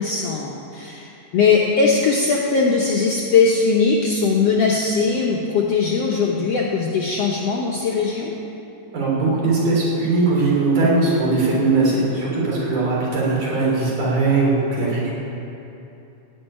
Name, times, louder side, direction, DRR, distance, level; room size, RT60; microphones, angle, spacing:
voice 1, 0.0-8.3, left 4 dB, 70° left, -2 dB, 1.5 m, -20 dB
voice 2, 8.9-15.1, right 3 dB, 65° right, -6 dB, 4.8 m, -20 dB
15.5 x 5.6 x 10.0 m, 2.9 s
omnidirectional pair, 3.9 m